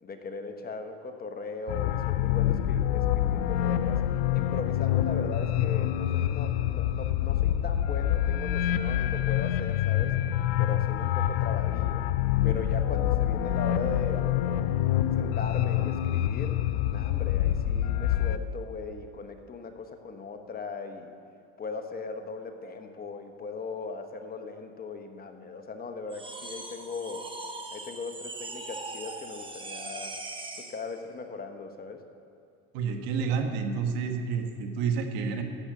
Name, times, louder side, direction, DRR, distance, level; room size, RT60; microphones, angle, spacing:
voice 1, 0.0-4.0 4.3-10.2 10.6-12.0 12.4-14.8 15.2-16.6 16.9-21.2 21.6-27.3 27.7-30.1 30.6-32.0, left 4 dB, 25° left, 6 dB, 1.0 m, -39 dB
sound 1, 1.7-18.4, left 11 dB, 75° left, 0.5 m, -26 dB
sound 2, 26.1-30.8, right 2 dB, 15° right, 1.2 m, -40 dB
voice 2, 32.7-35.4, right 5 dB, 75° right, 5 dB, 1.4 m, -29 dB
11.5 x 7.8 x 7.7 m, 2.3 s
supercardioid pair, 115°, 35 cm